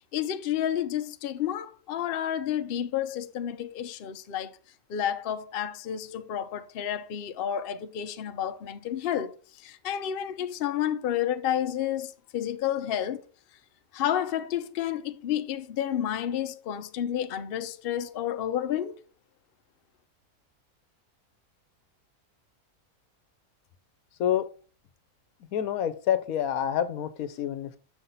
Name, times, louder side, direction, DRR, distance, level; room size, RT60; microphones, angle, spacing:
voice 1, 0.1-4.5 4.9-13.2 13.9-19.0, left 10 dB, 60° left, 0.6 m, -30 dB
voice 2, 25.5-27.8, left 10 dB, 75° left, 1.1 m, -27 dB
6.9 x 5.7 x 4.0 m
omnidirectional pair, 1.6 m